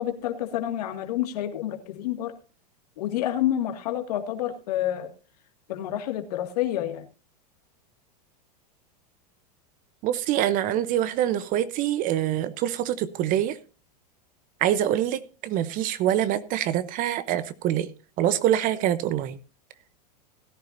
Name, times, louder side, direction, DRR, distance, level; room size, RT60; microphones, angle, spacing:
voice 1, 0.0-2.3 3.0-5.1 5.7-7.0, left 12 dB, 75° left, 2.1 m, -28 dB
voice 2, 10.0-13.6 14.6-17.9 18.2-19.4, right 11 dB, 40° right, 0.9 m, -25 dB
17.0 x 10.5 x 2.7 m
hypercardioid pair, 120°, 21 cm